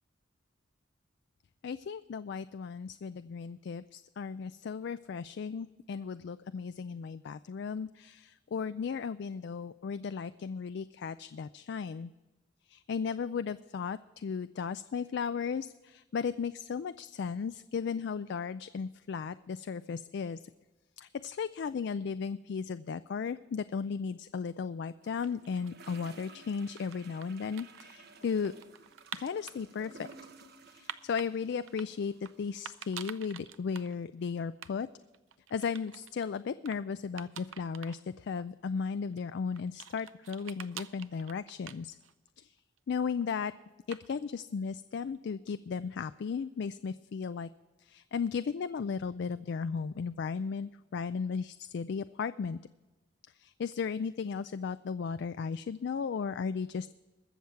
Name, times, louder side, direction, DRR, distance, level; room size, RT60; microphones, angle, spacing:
voice 1, 1.6-12.1 12.7-20.4 21.0-28.5 29.1-30.1 30.7-34.9 35.5-42.0 42.4-42.5 42.9-43.5 43.9-47.5 47.8-52.6 53.4-56.9, left 6 dB, 60° left, 12 dB, 0.3 m, -35 dB
sound 1, 25.0-33.1, right 3 dB, 55° right, 1.1 m, -55 dB
sound 2, 25.0-26.0 26.6-29.6 30.1-31.3 31.7-32.3 32.7-33.9 34.2-34.3 34.5-34.7 35.0-36.3 36.7-36.8 37.2-38.0 38.4-38.5 39.1-42.3 42.6-43.2 43.9-44.3, right 9 dB, 85° right, 0.6 m, -47 dB
21.5 x 7.2 x 4.6 m, 1.1 s
head